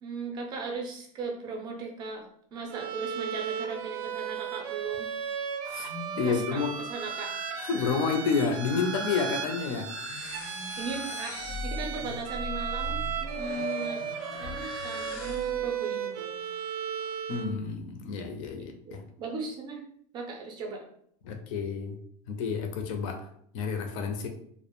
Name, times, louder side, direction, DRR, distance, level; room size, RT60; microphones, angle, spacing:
voice 1, 0.0-5.1 6.2-7.4 10.8-13.0 13.4-14.0 14.4-16.4 18.5-19.8 20.1-20.9, right 3 dB, 25° right, 1 dB, 0.4 m, -37 dB
Bowed string instrument, 2.7-17.6, right 8 dB, 85° right, 0.4 m, -36 dB
voice 2, 5.6-6.7 7.6-9.9 17.3-19.0 21.2-22.0 22.3-23.3 23.5-24.3, left 5 dB, 60° left, 5 dB, 0.5 m, -30 dB
sound 1, 5.7-15.7, left 1 dB, 90° left, 0.9 m, -40 dB
2.3 x 2.0 x 2.9 m, 0.66 s
supercardioid pair, 165°, 19 cm